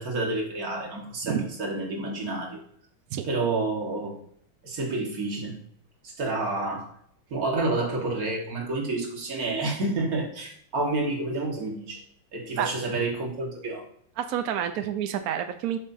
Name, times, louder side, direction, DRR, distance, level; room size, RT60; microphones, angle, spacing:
voice 1, 0.0-2.6 3.2-4.2 4.6-5.6 6.0-6.9 7.3-12.0 12.3-13.8, right 2 dB, 45° right, 0 dB, 1.9 m, -29 dB
voice 2, 14.2-15.8, right 10 dB, 80° right, 8 dB, 0.8 m, -28 dB
11.5 x 5.5 x 2.7 m, 0.66 s
omnidirectional pair, 2.2 m